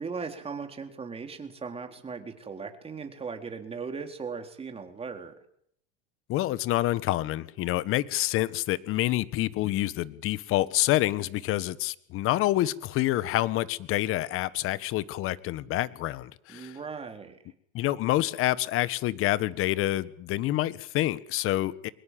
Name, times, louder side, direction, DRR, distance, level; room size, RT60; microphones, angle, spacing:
voice 1, 0.0-5.3 16.5-17.4, right 5 dB, 20° right, 5 dB, 3.9 m, -38 dB
voice 2, 6.3-16.8 17.7-21.9, left 15 dB, 45° left, 17 dB, 1.4 m, -27 dB
24.0 x 21.0 x 7.7 m, 0.69 s
hypercardioid pair, 105°, 30 cm